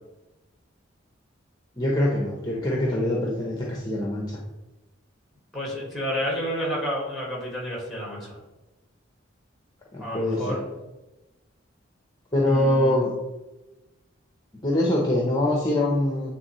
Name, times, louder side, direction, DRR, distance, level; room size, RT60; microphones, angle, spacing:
voice 1, 1.8-4.4 9.9-10.6 12.3-13.1 14.6-16.3, left 1 dB, 20° left, -3 dB, 0.8 m, -24 dB
voice 2, 5.5-8.4 10.0-10.7 12.5-13.0, equal, ahead, -3 dB, 1.8 m, -30 dB
9.4 x 3.6 x 3.0 m, 1.1 s
head